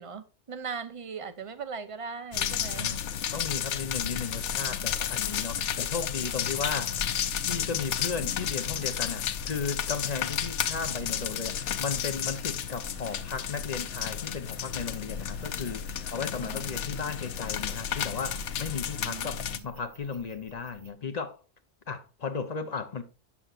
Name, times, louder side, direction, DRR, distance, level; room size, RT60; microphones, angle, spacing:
voice 1, 0.0-3.0 6.0-6.1 16.4-16.7 19.0-19.7, right 5 dB, 35° right, 0.6 m, -39 dB
sound 1, 2.3-19.6, left 8 dB, 85° left, 1.0 m, -32 dB
voice 2, 2.7-7.1 7.4-21.4 21.9-23.0, left 5 dB, 40° left, 0.7 m, -35 dB
sound 2, 3.5-20.9, left 3 dB, 65° right, 1.2 m, -49 dB
7.8 x 7.1 x 2.4 m
omnidirectional pair, 1.2 m